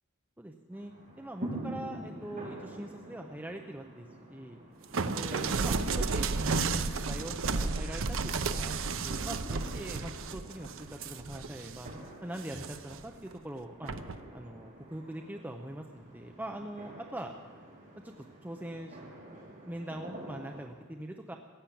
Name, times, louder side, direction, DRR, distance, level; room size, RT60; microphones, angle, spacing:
voice 1, 0.4-4.6 5.1-6.3 6.7-11.9 12.2-13.9 14.3-17.3 18.0-18.1 18.4-19.0 19.6-21.4, right 1 dB, 10° right, 3 dB, 0.7 m, -42 dB
sound 1, 0.7-20.7, right 1 dB, 35° right, 6.1 m, -46 dB
sound 2, 4.9-11.9 12.4-13.0 13.9-14.2, right 4 dB, 60° right, 0.7 m, -32 dB
16.0 x 10.5 x 8.6 m, 1.5 s
head